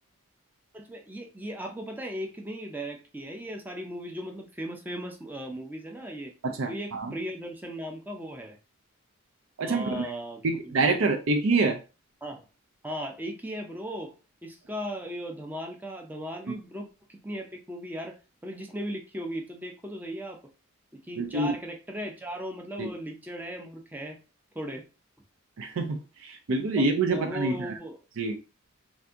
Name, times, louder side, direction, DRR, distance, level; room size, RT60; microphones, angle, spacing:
voice 1, 0.7-6.3 6.7-8.6 9.6-10.7 12.2-12.4 12.8-14.1 14.4-20.4 20.9-24.2 24.5-24.9 26.8-28.0, equal, 10° right, 3 dB, 0.4 m, -37 dB
voice 2, 6.4-7.1 9.6-10.1 10.4-11.8 16.5-16.6 21.2-21.5 22.8-22.9 25.6-27.8 28.2-28.4, right 3 dB, 70° right, 5 dB, 0.4 m, -26 dB
2.7 x 2.5 x 3.4 m, 0.32 s
head